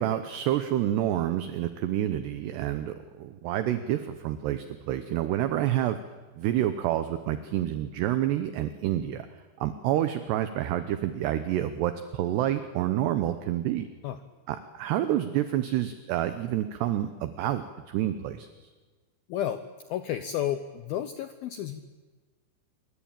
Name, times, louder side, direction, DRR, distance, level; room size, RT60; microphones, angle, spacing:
voice 1, 0.0-6.0 6.4-9.3 9.6-13.9 14.5-18.5, right 12 dB, 75° right, 10 dB, 2.8 m, -28 dB
voice 2, 19.3-19.6 19.9-21.8, left 11 dB, 75° left, 10 dB, 2.2 m, -31 dB
27.5 x 24.0 x 8.9 m, 1.3 s
omnidirectional pair, 5.5 m